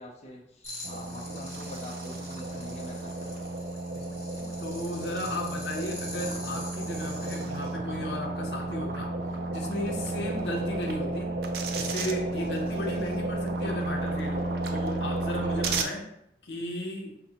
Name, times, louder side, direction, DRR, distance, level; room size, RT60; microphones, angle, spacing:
voice 1, 0.0-3.5 15.1-15.2, left 1 dB, 35° left, -3 dB, 0.6 m, -45 dB
sound 1, 0.6-7.4, left 1 dB, 15° left, 0.9 m, -44 dB
sound 2, 0.8-15.8, right 2 dB, 60° right, 0.4 m, -32 dB
sound 3, 4.3-13.6, equal, 20° right, 0.7 m, -48 dB
voice 2, 4.6-9.2 9.5-11.3 11.7-16.0 16.4-17.1, left 1 dB, 75° left, 1 dB, 0.7 m, -35 dB
5.8 x 2.1 x 2.8 m, 0.76 s
head